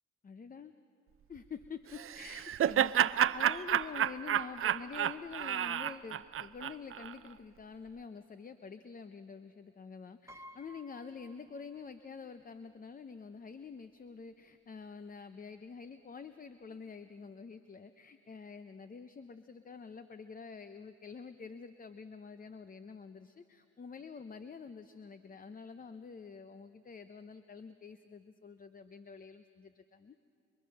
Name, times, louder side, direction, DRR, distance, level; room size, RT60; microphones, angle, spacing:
voice 1, 0.2-0.7 1.3-30.2, left 5 dB, 30° left, 10 dB, 0.7 m, -47 dB
Laughter, 1.9-7.1, right 10 dB, 45° right, 0.5 m, -30 dB
Piano, 10.3-12.1 12.4-12.5 13.7-13.8 14.1-14.3, equal, 10° right, 1.6 m, -55 dB
26.5 x 23.0 x 6.5 m, 2.6 s
cardioid pair, 90°, 30 cm